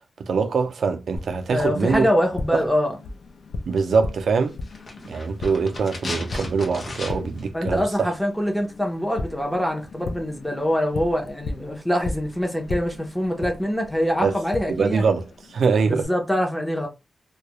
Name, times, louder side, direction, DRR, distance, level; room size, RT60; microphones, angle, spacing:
voice 1, 0.2-2.1 2.5-2.6 3.7-4.6 5.1-8.1 14.2-14.4 14.7-16.1, right 5 dB, 80° right, 0.3 m, -23 dB
Tap, 1.1-16.1, left 3 dB, 90° left, 0.4 m, -37 dB
voice 2, 1.5-3.0 5.0-5.1 7.5-15.0 15.9-16.9, equal, 5° left, 0.7 m, -24 dB
sound 1, 4.6-7.5 7.7-7.8, left 2 dB, 45° left, 0.7 m, -35 dB
2.3 x 2.1 x 2.9 m
wide cardioid pair, 130°, 0 cm